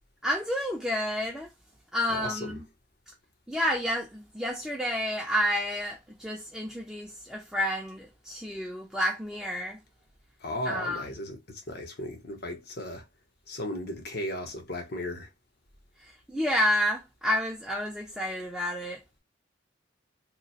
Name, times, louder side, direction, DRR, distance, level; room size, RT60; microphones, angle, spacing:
voice 1, 0.2-1.5 1.9-2.6 3.5-9.8 10.7-11.0 16.3-19.0, equal, ahead, 0.5 m, -30 dB
voice 2, 2.1-2.6 10.4-13.0 13.5-15.3, left 1 dB, 60° left, 0.9 m, -36 dB
3.0 x 2.1 x 4.0 m
head